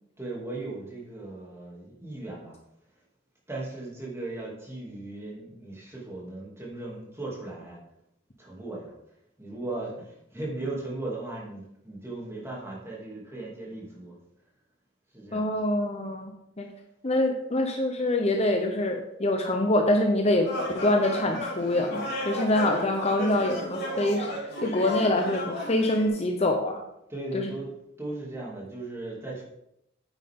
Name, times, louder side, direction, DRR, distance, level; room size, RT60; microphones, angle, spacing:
voice 1, 0.2-2.6 3.5-7.8 8.4-8.9 9.4-14.2 15.1-15.5 27.1-27.7 28.0-29.4, right 2 dB, 15° right, -4 dB, 2.7 m, -37 dB
voice 2, 15.3-16.7 17.0-24.3 24.6-26.8 27.3-27.5, left 1 dB, 30° left, 3 dB, 0.8 m, -25 dB
sound 1, 20.4-26.1, left 1 dB, 55° left, 3.1 m, -34 dB
9.4 x 8.3 x 3.7 m, 0.79 s
head